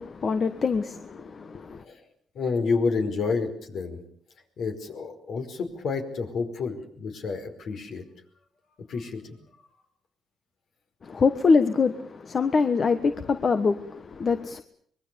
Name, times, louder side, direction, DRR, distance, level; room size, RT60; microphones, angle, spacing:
voice 1, 0.0-1.8 11.0-14.6, left 4 dB, 45° left, 1.4 m, -24 dB
voice 2, 2.4-4.0 4.6-8.0 8.9-9.3, left 4 dB, 65° left, 5.2 m, -29 dB
25.5 x 22.0 x 7.1 m
cardioid pair, 90°, 0 cm